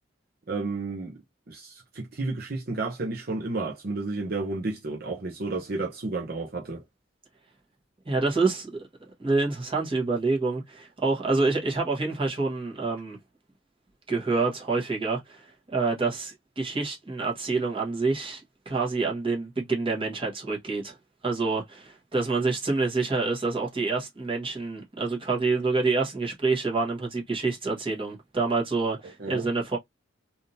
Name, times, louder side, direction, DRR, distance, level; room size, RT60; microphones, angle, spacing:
voice 1, 0.5-6.8 29.2-29.5, right 3 dB, 50° right, 0.8 m, -32 dB
voice 2, 8.0-8.9 9.2-13.2 14.1-15.4 15.7-21.0 21.2-29.8, right 3 dB, 25° right, 1.4 m, -27 dB
3.5 x 2.8 x 2.6 m
head